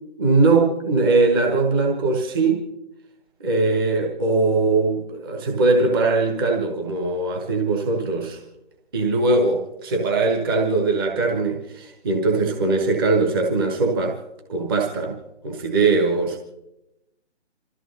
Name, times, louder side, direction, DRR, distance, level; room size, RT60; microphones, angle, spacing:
voice 1, 0.2-2.6 3.4-8.4 8.9-14.2 14.5-15.2 15.4-16.4, right 3 dB, 20° right, 0 dB, 1.2 m, -21 dB
27.5 x 14.0 x 2.7 m, 0.90 s
figure-of-eight pair, 150°, 35 cm